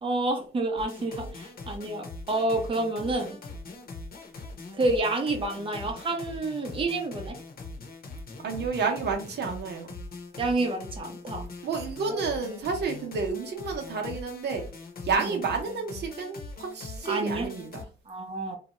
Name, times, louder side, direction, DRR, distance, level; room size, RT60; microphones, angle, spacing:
voice 1, 0.0-3.4 4.7-7.4 10.4-11.5 12.1-12.3 17.0-17.5 18.1-18.6, right 2 dB, 25° right, 0.7 m, -29 dB
sound 1, 0.8-17.8, left 3 dB, 50° left, 0.9 m, -42 dB
voice 2, 8.4-10.0 11.6-14.7 15.0-17.9, right 5 dB, 60° right, 0.8 m, -30 dB
2.7 x 2.2 x 3.0 m
cardioid pair, 90°, 20 cm